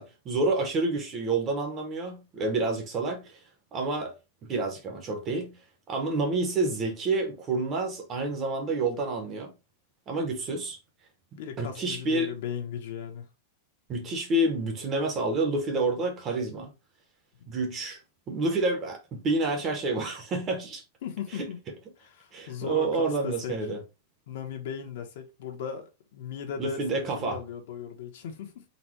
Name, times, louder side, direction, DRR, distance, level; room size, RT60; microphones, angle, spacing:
voice 1, 0.0-3.4 3.7-4.1 4.4-5.5 5.9-9.5 10.1-10.8 11.6-12.3 13.9-16.7 17.5-18.0 18.3-20.8 21.4-21.5 22.3-23.8 26.6-27.4, right 2 dB, 20° right, 0.8 m, -28 dB
voice 2, 11.4-13.3 21.0-21.6 22.0-23.6 24.3-28.6, left 7 dB, 55° left, 1.0 m, -37 dB
4.1 x 2.2 x 4.5 m
supercardioid pair, 175°, 0 cm